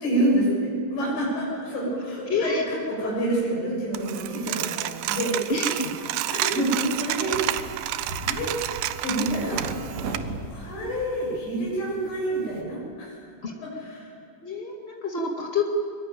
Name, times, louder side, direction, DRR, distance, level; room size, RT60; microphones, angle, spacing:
voice 1, 0.0-5.3 6.3-7.4 8.2-8.5 9.0-9.6 10.5-13.2 13.6-14.1, right 1 dB, 90° left, -5 dB, 9.6 m, -27 dB
voice 2, 2.3-2.6 5.5-5.9 13.4-13.5 14.4-15.7, left 4 dB, 45° left, 0 dB, 0.8 m, -27 dB
Coin (dropping), 4.0-10.2, right 14 dB, 85° right, 3.1 m, -30 dB
sound 1, 6.4-12.6, right 3 dB, 60° right, 4.2 m, -39 dB
23.5 x 23.0 x 9.2 m, 2.3 s
omnidirectional pair, 5.0 m